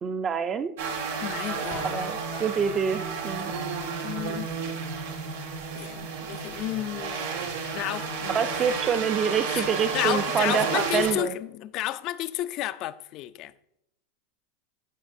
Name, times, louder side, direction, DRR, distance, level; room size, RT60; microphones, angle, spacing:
voice 1, 0.0-0.7 1.8-3.5 8.3-11.4, right 7 dB, 25° right, 0.6 m, -26 dB
sound 1, 0.8-11.1, right 5 dB, 85° right, 1.9 m, -32 dB
voice 2, 1.2-2.1 4.0-4.5 5.7-8.8 9.5-9.7 9.9-13.5, left 14 dB, 45° left, 0.5 m, -32 dB
15.0 x 5.9 x 2.7 m
supercardioid pair, 130°, 0 cm